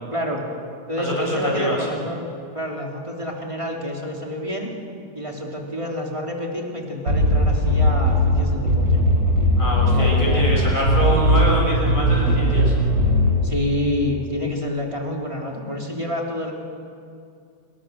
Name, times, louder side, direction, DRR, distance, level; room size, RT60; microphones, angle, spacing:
voice 1, 0.1-0.4 0.9-2.2 2.5-4.7 5.1-9.0 9.8-10.4 13.4-16.5, left 1 dB, 15° right, -1 dB, 3.3 m, -28 dB
voice 2, 1.0-1.9 9.6-12.7, equal, 25° left, -3 dB, 7.6 m, -24 dB
sound 1, 7.1-13.5, equal, 90° right, 7.9 m, -19 dB
28.0 x 21.5 x 6.5 m, 2.4 s
omnidirectional pair, 1.9 m